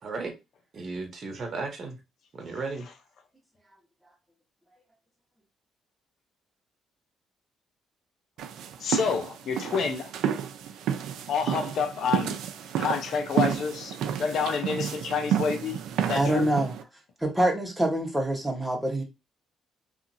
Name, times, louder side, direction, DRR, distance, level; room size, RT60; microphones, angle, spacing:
voice 1, 0.0-0.3 0.7-2.0 2.3-2.9, right 3 dB, 45° right, 0.9 m, -34 dB
sound 1, 8.4-16.8, right 9 dB, 85° right, 0.4 m, -30 dB
voice 2, 8.8-10.1 11.3-12.4 12.8-16.5, left 5 dB, 65° left, 0.6 m, -29 dB
voice 3, 16.1-16.7 17.2-19.0, right 1 dB, 5° right, 1.1 m, -25 dB
2.8 x 2.5 x 2.6 m
cardioid pair, 90°, 0 cm